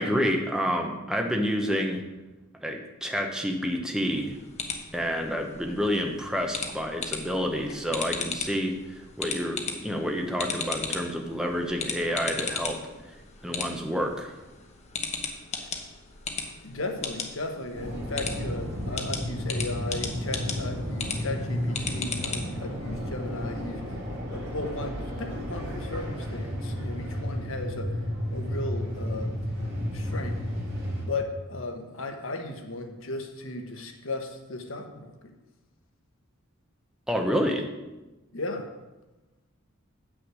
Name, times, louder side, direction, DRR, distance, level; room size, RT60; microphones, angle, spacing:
voice 1, 0.0-2.0 2.5-4.3 4.9-12.8 13.4-14.3 37.1-37.7, equal, 5° right, 3 dB, 0.8 m, -28 dB
sound 1, 4.1-22.6, left 5 dB, 30° left, 0.9 m, -37 dB
voice 2, 16.6-24.0 24.3-28.1 28.3-29.3 29.9-30.4 31.1-35.3 38.3-38.7, left 2 dB, 70° left, 4 dB, 1.1 m, -36 dB
sound 2, 17.7-31.1, equal, 50° right, 2.2 m, -32 dB
7.9 x 6.1 x 6.2 m, 1.1 s
head